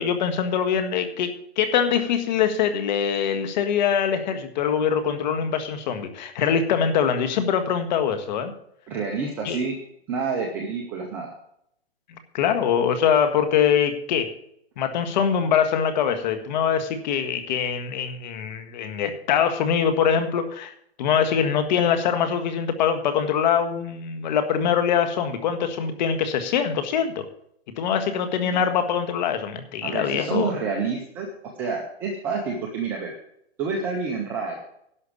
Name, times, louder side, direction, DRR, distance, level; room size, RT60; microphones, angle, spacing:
voice 1, 0.0-8.5 9.4-9.6 12.1-14.3 14.8-20.7 21.0-27.3 27.8-30.5, left 7 dB, 45° left, 8 dB, 1.6 m, -23 dB
voice 2, 8.9-9.8 10.1-11.3 28.5-28.7 29.8-31.3 31.6-33.1 33.6-34.6, right 5 dB, 5° right, 1 dB, 0.3 m, -28 dB
11.5 x 5.8 x 8.4 m, 0.73 s
hypercardioid pair, 150°, 32 cm